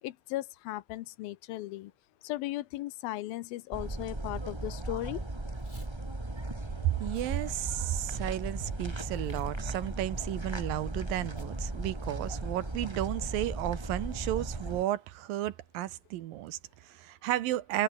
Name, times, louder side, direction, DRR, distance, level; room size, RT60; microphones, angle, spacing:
voice 1, 0.0-1.9 2.2-5.3, left 16 dB, 80° left, 2.6 m, -37 dB
sound 1, 3.7-14.8, right 2 dB, 20° right, 0.8 m, -37 dB
Packing tape duct tape / Tearing, 5.5-5.9 6.4-6.5 7.0-7.3 7.8-8.4 9.1-9.5 9.8-9.9 11.4-11.5 11.9-12.0 12.3-12.6, left 1 dB, 10° left, 4.7 m, -61 dB
voice 2, 6.8-17.8, right 14 dB, 75° right, 2.6 m, -33 dB
omnidirectional pair, 4.4 m